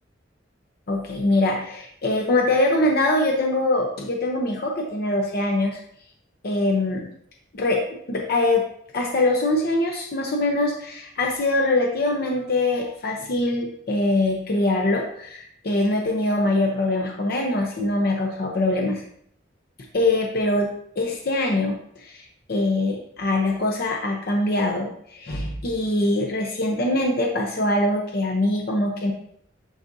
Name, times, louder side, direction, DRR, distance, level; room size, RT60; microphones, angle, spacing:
voice 1, 0.9-5.8 6.4-7.1 7.5-8.6 8.9-19.0 19.9-20.7 21.0-29.1, left 2 dB, 55° left, 0 dB, 0.8 m, -23 dB
11.0 x 4.0 x 2.7 m, 0.68 s
head